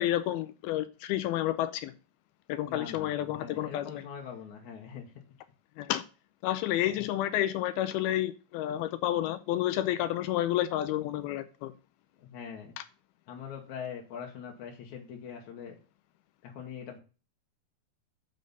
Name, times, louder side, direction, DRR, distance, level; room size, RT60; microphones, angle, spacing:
voice 1, 0.0-1.9 2.5-4.0 5.8-6.0 6.4-11.7 12.8-12.9, left 13 dB, 80° left, 2.5 m, -30 dB
voice 2, 2.7-5.1 7.0-7.1 12.2-12.8 13.3-15.8 16.4-17.0, left 7 dB, 60° left, 2.5 m, -42 dB
7.7 x 5.5 x 5.3 m
omnidirectional pair, 4.5 m